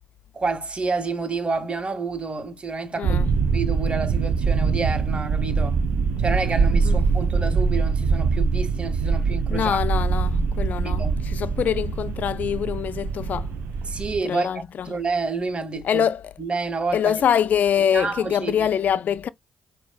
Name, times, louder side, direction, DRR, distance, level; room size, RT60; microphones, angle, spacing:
voice 1, 0.3-3.2 3.5-5.8 6.2-9.8 10.8-11.2 13.8-14.5 14.8-16.1 16.4-17.2 17.9-18.7, right 4 dB, 35° right, 1.9 m, -29 dB
voice 2, 3.0-3.4 6.8-7.0 9.5-13.5 14.2-14.9 15.8-16.3 16.9-19.3, left 8 dB, 60° left, 0.4 m, -24 dB
sound 1, 3.0-14.2, right 5 dB, 70° right, 0.6 m, -23 dB
6.0 x 2.7 x 2.3 m
hypercardioid pair, 45°, 3 cm